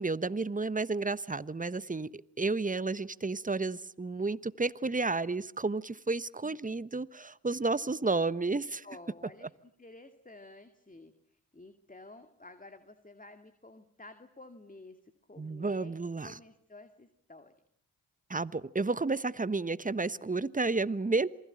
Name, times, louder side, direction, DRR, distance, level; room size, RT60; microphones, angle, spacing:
voice 1, 0.0-8.8 15.4-16.4 18.3-21.3, right 3 dB, 20° right, 1.1 m, -31 dB
voice 2, 8.8-9.5 9.8-15.0 15.3-15.9 16.2-17.5, left 2 dB, 20° left, 2.4 m, -52 dB
27.5 x 21.0 x 9.0 m
hypercardioid pair, 40°, 44 cm